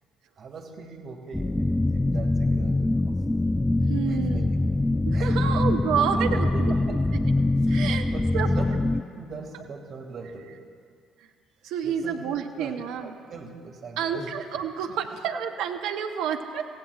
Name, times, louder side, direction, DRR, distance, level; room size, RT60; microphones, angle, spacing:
voice 1, 0.4-3.1 4.1-4.2 5.1-5.3 5.9-7.0 8.1-8.8 9.2-10.6 11.8-12.2 12.6-12.8 13.0-14.3 14.9-15.0, right 4 dB, 45° right, 1 dB, 2.2 m, -39 dB
sound 1, 1.3-9.0, left 2 dB, 15° left, 0.4 m, -24 dB
voice 2, 3.9-4.5 5.0-7.0 7.7-8.1 8.3-8.5 11.6-13.1 14.0-16.7, right 8 dB, 65° right, 5 dB, 0.9 m, -29 dB
24.0 x 16.0 x 2.5 m, 2.1 s
figure-of-eight pair, 50°, 0 cm